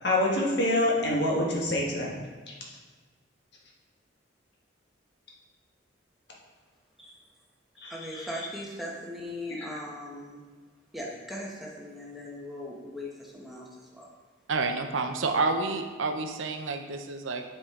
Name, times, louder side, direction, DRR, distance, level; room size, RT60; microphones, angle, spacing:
voice 1, 0.0-2.2 7.8-8.3 9.6-9.8, left 1 dB, 60° left, -3 dB, 1.5 m, -26 dB
voice 2, 7.7-10.4 10.9-14.1, left 1 dB, ahead, -4 dB, 1.1 m, -39 dB
voice 3, 14.5-17.4, right 3 dB, 85° right, 5 dB, 0.7 m, -29 dB
8.6 x 5.0 x 3.7 m, 1.4 s
head